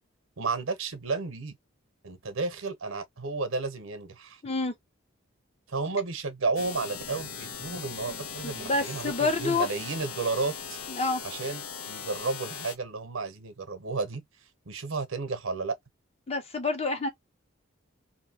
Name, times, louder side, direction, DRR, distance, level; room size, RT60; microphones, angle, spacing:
voice 1, 0.4-1.6 2.0-4.4 5.7-10.8 11.2-14.2 14.7-15.8, right 3 dB, 75° right, 0.8 m, -32 dB
voice 2, 4.4-4.7 8.1-9.7 10.9-11.2 16.3-17.1, left 3 dB, 30° left, 0.6 m, -28 dB
sound 1, 6.6-12.8, left 6 dB, 85° left, 0.7 m, -39 dB
2.7 x 2.7 x 2.8 m
head